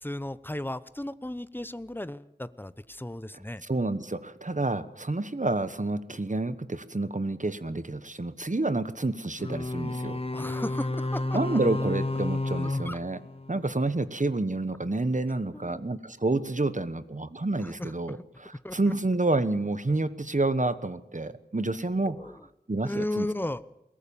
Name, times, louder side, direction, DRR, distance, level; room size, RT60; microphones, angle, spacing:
voice 1, 0.0-3.6 10.3-11.6 12.8-13.0 15.5-15.9 17.6-18.2 18.6-18.9 22.1-22.4 22.8-23.6, left 1 dB, 10° left, 15 dB, 0.9 m, -35 dB
voice 2, 3.6-10.2 11.3-13.2 13.5-22.2 22.7-23.3, right 2 dB, 45° right, 13 dB, 1.2 m, -29 dB
sound 1, 9.4-13.9, left 2 dB, 35° left, 1.0 m, -31 dB
22.0 x 18.5 x 7.0 m, 0.82 s
wide cardioid pair, 45°, 17 cm